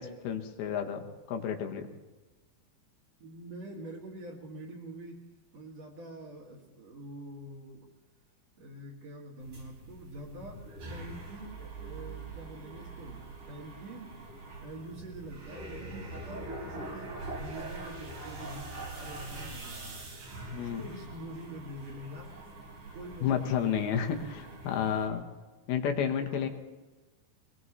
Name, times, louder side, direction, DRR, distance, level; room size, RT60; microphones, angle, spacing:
voice 1, 0.0-1.9 20.5-20.8 23.2-25.2 25.7-26.5, left 8 dB, 85° left, 5 dB, 3.1 m, -31 dB
voice 2, 3.2-7.9 8.6-14.1 14.6-20.0 20.5-22.4 22.9-24.5 26.3-26.5, right 1 dB, 50° right, -2 dB, 2.9 m, -46 dB
sound 1, 9.4-25.1, right 2 dB, 85° right, 5.6 m, -43 dB
23.0 x 18.5 x 3.2 m, 1.2 s
omnidirectional pair, 4.3 m